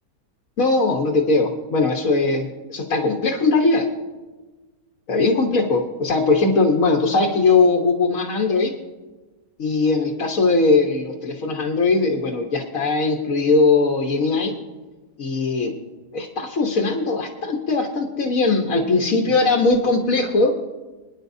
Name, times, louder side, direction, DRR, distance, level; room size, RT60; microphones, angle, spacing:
voice 1, 0.6-3.9 5.1-8.7 9.6-14.5 15.2-15.8 16.1-20.5, left 3 dB, 55° left, 1 dB, 1.5 m, -20 dB
27.0 x 10.0 x 2.7 m, 1.2 s
omnidirectional pair, 1.7 m